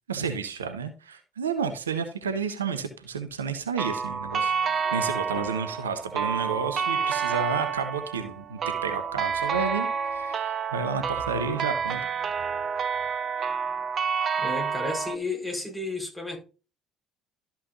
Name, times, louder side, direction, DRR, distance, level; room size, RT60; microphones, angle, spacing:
voice 1, 0.1-12.0, right 5 dB, 85° right, 0.8 m, -31 dB
sound 1, 3.8-15.2, right 6 dB, 45° right, 0.7 m, -29 dB
voice 2, 14.4-16.4, left 2 dB, 5° left, 4.5 m, -32 dB
13.0 x 5.8 x 2.5 m
hypercardioid pair, 55°, 0 cm